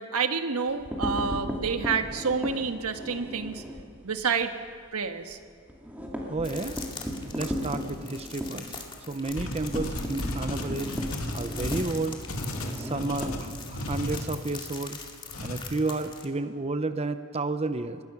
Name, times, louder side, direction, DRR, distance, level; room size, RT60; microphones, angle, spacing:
voice 1, 0.0-3.6 4.0-4.5 4.9-5.4, right 5 dB, 85° right, 7 dB, 1.4 m, -28 dB
sound 1, 0.7-3.9 4.3-4.4 4.7-4.8 5.2-14.0, equal, 5° right, 2.5 m, -35 dB
voice 2, 6.3-6.9 7.3-8.7 9.1-10.9 11.3-12.2 12.8-15.0 15.4-18.0, right 3 dB, 30° right, 10 dB, 0.6 m, -31 dB
sound 2, 6.4-16.2, left 5 dB, 20° left, 2.2 m, -43 dB
sound 3, 9.3-14.2 15.3-15.6, left 1 dB, 70° left, 2.4 m, -34 dB
24.5 x 20.5 x 5.9 m, 2.1 s
head